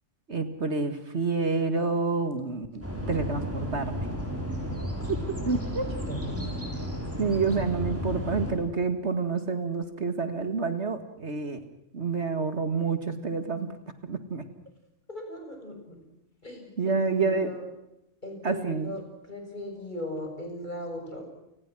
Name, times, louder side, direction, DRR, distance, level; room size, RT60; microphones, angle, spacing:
voice 1, 0.3-4.1 5.5-5.9 7.2-11.6 11.9-13.7 14.0-14.5 16.8-17.5 18.4-18.9, right 4 dB, 60° right, 9 dB, 2.2 m, -28 dB
sound 1, 2.8-8.5, equal, 10° right, 7.0 m, -33 dB
voice 2, 5.9-6.5 15.1-16.0 16.4-17.6 18.2-19.0 19.3-21.3, left 1 dB, 35° left, 3 dB, 7.0 m, -38 dB
29.5 x 20.0 x 6.2 m, 0.86 s
omnidirectional pair, 1.3 m